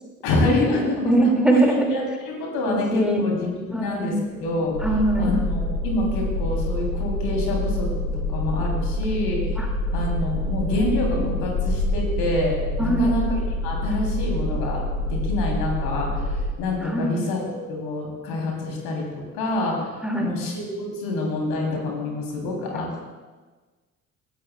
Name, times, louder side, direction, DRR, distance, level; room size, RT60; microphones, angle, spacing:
voice 1, 0.2-1.3 1.9-4.9 5.2-9.4 9.9-13.3 13.6-19.9 20.2-23.1, left 2 dB, 60° left, 0 dB, 3.0 m, -27 dB
voice 2, 1.1-2.0 2.7-3.2 3.7-4.1 4.8-5.3 9.6-9.7 10.4-10.7 11.1-11.3 12.8-13.2 16.8-17.1 20.0-20.3 22.7-22.8, right 1 dB, ahead, 0 dB, 2.1 m, -22 dB
sound 1, 4.7-16.5, left 1 dB, 85° left, 1.2 m, -26 dB
sound 2, 9.3-12.2, left 2 dB, 85° right, 3.0 m, -35 dB
17.5 x 13.0 x 2.2 m, 1.3 s
figure-of-eight pair, 50°, 42 cm